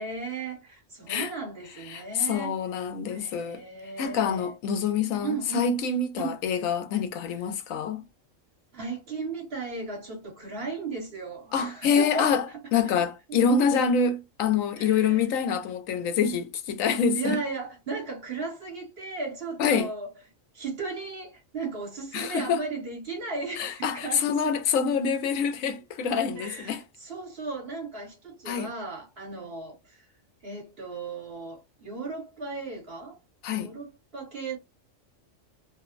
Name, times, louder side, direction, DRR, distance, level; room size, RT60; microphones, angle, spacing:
voice 1, 0.0-2.5 3.1-4.5 5.2-5.7 6.2-6.4 8.7-12.3 12.8-13.0 13.3-13.4 14.8-15.3 17.1-20.1 20.5-24.5 25.7-25.8 26.3-30.0 30.4-33.2 33.5-34.6, right 4 dB, 50° right, 1.5 m, -36 dB
voice 2, 1.8-3.6 4.0-8.0 11.5-12.5 12.7-17.4 19.6-19.9 22.1-22.7 23.6-26.8 28.5-28.7 33.4-33.7, left 6 dB, 90° left, 1.1 m, -26 dB
3.1 x 2.0 x 2.4 m
omnidirectional pair, 1.3 m